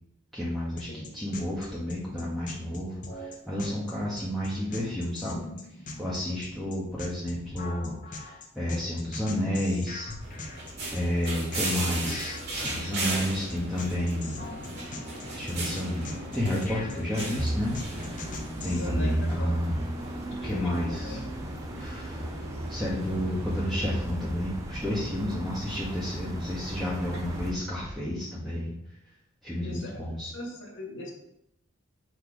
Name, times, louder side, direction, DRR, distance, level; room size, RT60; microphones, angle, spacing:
voice 1, 0.3-5.4 6.0-10.1 10.9-14.4 15.3-18.3 18.6-19.8 20.4-21.3 21.8-22.3 22.7-28.7 29.4-30.3, left 1 dB, ahead, -8 dB, 1.5 m, -31 dB
sound 1, 0.8-18.9, left 2 dB, 40° left, 1.0 m, -42 dB
sound 2, 10.2-27.5, right 1 dB, 55° right, 2.2 m, -37 dB
sound 3, 17.4-27.5, right 1 dB, 15° right, 0.3 m, -35 dB
voice 2, 18.6-19.5 20.3-21.3 29.6-31.1, left 2 dB, 60° left, -2 dB, 2.2 m, -40 dB
8.2 x 4.5 x 5.0 m, 0.80 s
head